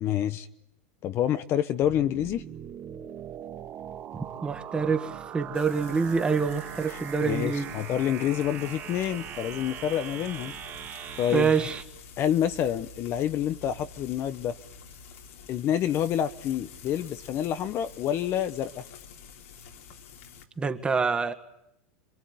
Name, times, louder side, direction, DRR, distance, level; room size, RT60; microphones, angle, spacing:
voice 1, 0.0-0.5 1.0-2.4 7.2-10.5 11.2-11.5 12.2-14.5 15.5-18.8, left 10 dB, 35° left, 1.1 m, -28 dB
sound 1, 1.8-11.8, right 10 dB, 35° right, 1.9 m, -40 dB
voice 2, 4.4-7.7 11.3-11.8 20.6-21.3, right 5 dB, 15° right, 1.8 m, -26 dB
Frying (food), 5.5-20.4, left 6 dB, 80° left, 3.3 m, -48 dB
27.5 x 22.5 x 9.6 m
supercardioid pair, 135°, 7 cm